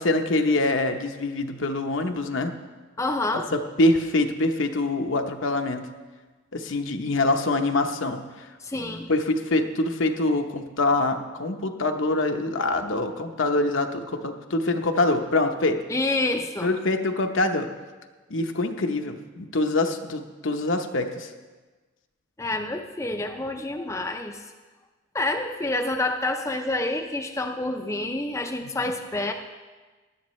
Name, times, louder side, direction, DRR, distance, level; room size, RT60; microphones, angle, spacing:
voice 1, 0.0-2.5 3.5-5.9 6.5-8.5 9.1-15.8 16.6-17.7 18.3-21.3 28.6-28.7, left 2 dB, 70° left, 5 dB, 0.9 m, -25 dB
voice 2, 3.0-3.5 8.6-9.1 15.9-16.7 22.4-24.4 25.1-29.3, left 2 dB, 15° left, 4 dB, 0.5 m, -28 dB
16.5 x 11.5 x 3.2 m, 1.3 s
head